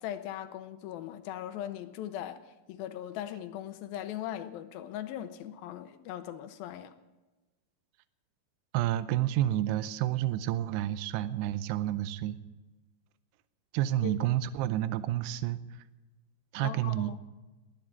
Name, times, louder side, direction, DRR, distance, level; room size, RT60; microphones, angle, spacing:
voice 1, 0.0-2.4 2.7-7.0 14.0-14.1 16.6-17.2, left 11 dB, 75° left, 10 dB, 2.3 m, -39 dB
voice 2, 8.7-12.4 13.7-15.6 16.5-17.1, right 13 dB, 85° right, 14 dB, 2.7 m, -29 dB
20.5 x 9.4 x 7.4 m, 1.2 s
omnidirectional pair, 4.8 m